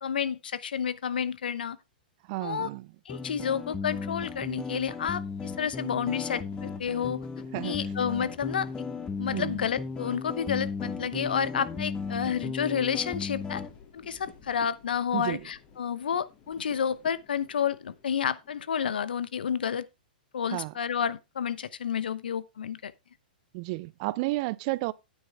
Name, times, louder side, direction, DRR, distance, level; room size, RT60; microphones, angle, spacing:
voice 1, 0.0-1.8 2.4-2.7 3.1-7.2 7.6-8.7 9.2-13.6 13.9-19.9 20.3-22.9, left 7 dB, 80° left, 0.8 m, -30 dB
voice 2, 2.3-2.9 7.5-7.8 9.3-9.6 15.1-15.4 20.5-20.7 23.5-24.9, right 21 dB, 45° right, 0.5 m, -32 dB
sound 1, 3.1-13.7, left 5 dB, 15° left, 1.1 m, -35 dB
sound 2, 4.4-18.7, left 8 dB, 35° left, 2.6 m, -53 dB
9.6 x 8.9 x 3.4 m
hypercardioid pair, 115°, 5 cm